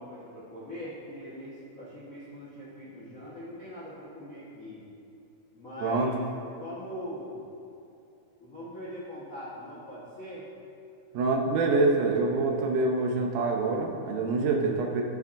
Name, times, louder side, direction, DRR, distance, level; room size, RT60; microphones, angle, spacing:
voice 1, 0.0-4.8 5.5-7.5 8.4-10.5, equal, 55° left, -8 dB, 0.9 m, -41 dB
voice 2, 11.1-15.0, right 3 dB, 80° right, 1 dB, 2.3 m, -26 dB
13.5 x 7.1 x 2.6 m, 2.7 s
omnidirectional pair, 3.6 m